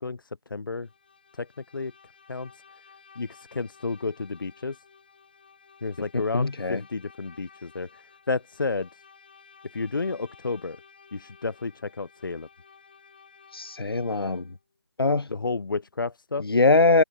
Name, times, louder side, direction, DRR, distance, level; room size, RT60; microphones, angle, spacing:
voice 1, 0.0-0.9 1.4-1.5 1.7-1.9 2.3-2.5 3.2-4.8 5.8-7.9 8.3-8.9 9.7-10.8 11.1-12.5 15.3-16.4, left 4 dB, 60° left, 0.5 m, -31 dB
Bowed string instrument, 0.7-14.6, left 5 dB, 25° left, 6.7 m, -55 dB
voice 2, 6.1-6.8 13.5-14.5 15.0-15.3 16.4-17.0, left 3 dB, 80° left, 1.1 m, -22 dB
figure-of-eight pair, 180°, 12 cm